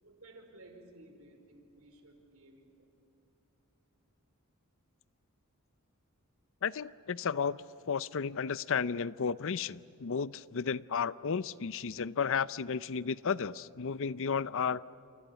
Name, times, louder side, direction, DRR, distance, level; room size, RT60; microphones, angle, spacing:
voice 1, 0.0-2.9, right 2 dB, 70° right, 4 dB, 4.9 m, -56 dB
voice 2, 6.6-7.6 7.9-14.8, left 6 dB, 60° left, 17 dB, 0.6 m, -33 dB
30.0 x 28.0 x 7.0 m, 2.8 s
head